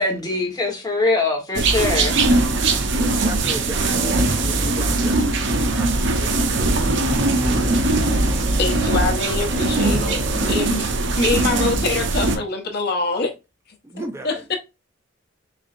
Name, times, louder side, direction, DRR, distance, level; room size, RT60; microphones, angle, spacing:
voice 1, 0.0-2.2, left 2 dB, 20° left, 1.1 m, -22 dB
sound 1, 1.5-12.4, right 2 dB, 65° right, 0.6 m, -20 dB
voice 2, 2.9-3.9 4.4-8.6 13.8-14.6, right 1 dB, 15° right, 0.4 m, -37 dB
sound 2, 3.9-5.0 6.2-10.6, right 1 dB, 40° right, 0.9 m, -29 dB
voice 3, 8.6-10.9 11.2-13.3 13.9-14.6, left 3 dB, 55° left, 0.9 m, -24 dB
4.2 x 3.6 x 2.5 m
head